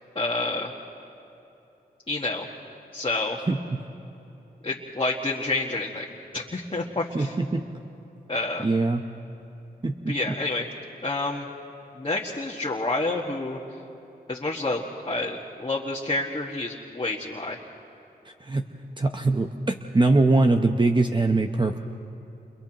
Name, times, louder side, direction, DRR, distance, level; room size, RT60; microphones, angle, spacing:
voice 1, 0.2-0.7 2.1-2.5 2.9-3.4 4.6-6.1 6.3-7.3 8.3-8.7 10.1-10.6 11.0-11.5 12.0-13.6 14.3-17.6, left 2 dB, 30° left, -3 dB, 1.7 m, -28 dB
voice 2, 7.1-7.6 8.6-9.0 9.8-10.2 18.4-18.6 19.0-21.8, right 2 dB, 25° right, 4 dB, 0.9 m, -22 dB
29.5 x 29.0 x 3.0 m, 2.9 s
cardioid pair, 55°, 17 cm